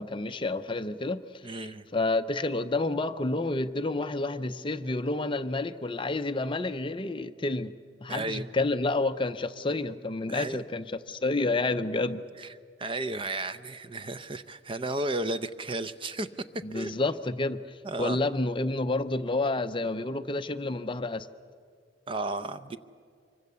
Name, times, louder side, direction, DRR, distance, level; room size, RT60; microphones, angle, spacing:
voice 1, 0.0-1.6 1.9-7.7 8.0-12.2 16.6-21.3, left 2 dB, 25° left, 10 dB, 0.6 m, -29 dB
voice 2, 1.4-1.9 8.1-8.5 10.3-10.6 12.4-12.5 12.8-16.3 16.7-16.9 17.8-18.2 22.1-22.8, right 2 dB, 25° right, 13 dB, 0.6 m, -33 dB
25.5 x 24.0 x 6.8 m, 2.1 s
head